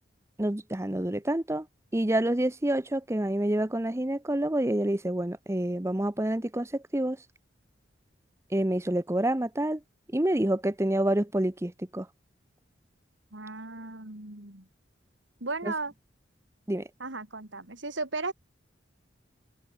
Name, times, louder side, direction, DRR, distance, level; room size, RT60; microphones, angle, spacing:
voice 1, 0.4-1.7 1.9-7.2 8.5-9.8 10.1-12.1 15.6-15.7 16.7-16.9, right 1 dB, 15° right, 0.8 m, -28 dB
voice 2, 13.3-14.7 15.4-15.9 17.0-18.3, right 3 dB, 90° right, 4.5 m, -35 dB
head